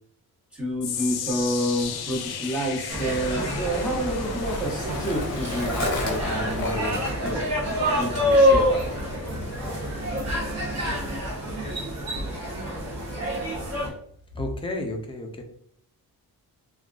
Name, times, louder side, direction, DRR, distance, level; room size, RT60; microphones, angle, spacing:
voice 1, 0.5-7.4 7.7-9.0, equal, 5° right, -4 dB, 1.0 m, -29 dB
sound 1, 0.8-13.1 13.4-13.8 14.4-14.5, left 8 dB, 90° left, 0.5 m, -38 dB
Skateboard, 0.9-13.7, left 3 dB, 45° left, 0.7 m, -37 dB
sound 2, 2.9-13.9, equal, 45° right, 0.9 m, -26 dB
voice 2, 14.3-15.4, left 1 dB, 15° left, 2 dB, 0.4 m, -31 dB
3.7 x 2.4 x 2.3 m, 0.65 s
wide cardioid pair, 180°, 37 cm